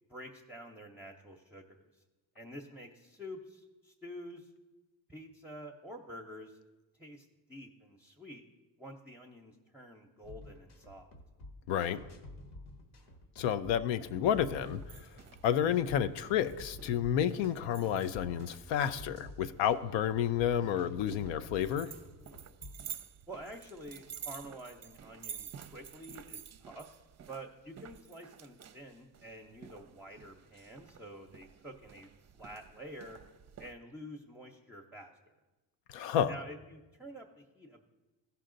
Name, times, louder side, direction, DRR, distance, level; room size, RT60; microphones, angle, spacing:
voice 1, 0.1-2.0 2.3-4.5 5.1-6.6 7.0-8.4 8.8-11.1 23.3-26.8 27.3-32.1 32.3-33.2 33.6-35.3 36.3-37.9, equal, 5° right, 0 dB, 0.7 m, -48 dB
sound 1, 10.2-22.9, left 1 dB, 70° left, 1.3 m, -51 dB
voice 2, 11.7-12.0 13.4-15.1 15.4-21.9 35.9-36.3, left 9 dB, 90° left, 12 dB, 0.6 m, -30 dB
sound 2, 14.5-33.7, right 8 dB, 40° right, 0.5 m, -51 dB
14.5 x 5.6 x 3.8 m, 1.1 s
cardioid pair, 85°, 43 cm